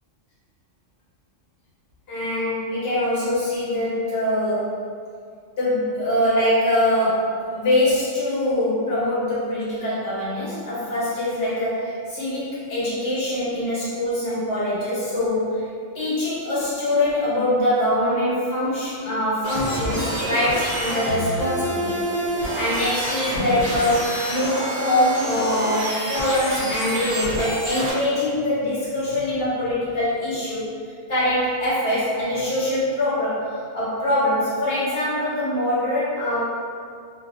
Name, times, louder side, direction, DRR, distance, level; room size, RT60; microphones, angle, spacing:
voice 1, 2.1-4.8 5.6-15.7 15.9-30.7 31.1-36.4, left 1 dB, 60° left, -9 dB, 1.1 m, -23 dB
sound 1, 19.4-27.9, equal, 45° right, 0.7 m, -27 dB
2.6 x 2.1 x 2.6 m, 2.2 s
omnidirectional pair, 1.1 m